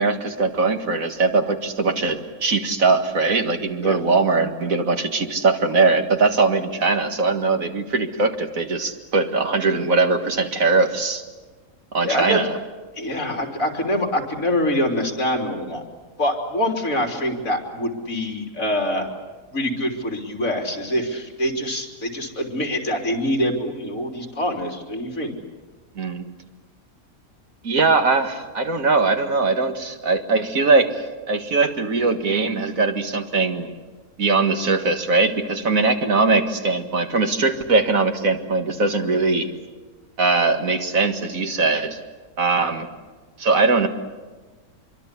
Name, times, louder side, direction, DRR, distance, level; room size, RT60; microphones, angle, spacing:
voice 1, 0.0-11.2 11.9-12.6 26.0-26.2 27.6-33.7 34.2-39.5 40.2-42.0 42.4-42.9 43.4-43.9, right 3 dB, 70° right, 6 dB, 2.2 m, -21 dB
voice 2, 12.0-12.4 13.0-15.8 16.2-19.1 19.5-25.3, left 1 dB, 65° left, 2 dB, 3.8 m, -25 dB
25.5 x 23.5 x 8.3 m, 1.3 s
omnidirectional pair, 1.5 m